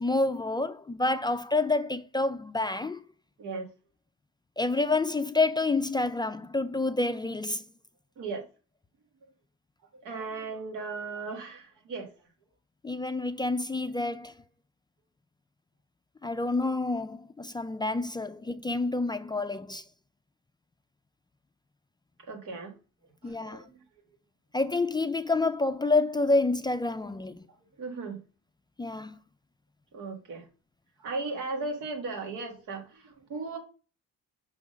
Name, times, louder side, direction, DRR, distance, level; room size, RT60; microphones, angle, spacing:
voice 1, 0.0-3.0 4.6-7.6 12.8-14.3 16.2-19.8 23.2-23.6 24.5-27.4 28.8-29.1, left 3 dB, 15° left, 0.3 m, -28 dB
voice 2, 8.2-8.5 10.0-12.1 22.3-22.7 23.2-23.8 27.8-28.2 29.9-30.4 31.0-33.6, right 3 dB, 85° right, 1.6 m, -36 dB
5.8 x 3.6 x 5.2 m
cardioid pair, 90°, 30 cm